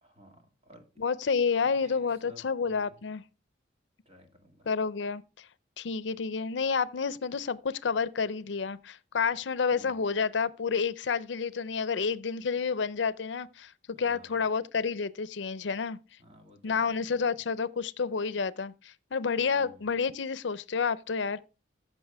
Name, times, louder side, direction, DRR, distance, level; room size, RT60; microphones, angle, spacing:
voice 1, 0.0-0.8 1.6-3.0 4.1-4.7 9.7-10.1 13.9-14.4 16.2-16.9 19.5-19.9, equal, 30° right, 2.1 m, -55 dB
voice 2, 1.0-3.2 4.7-5.5 5.8-13.7 14.0-16.0 16.6-21.4, left 5 dB, 75° left, 0.5 m, -30 dB
14.5 x 6.1 x 3.4 m
head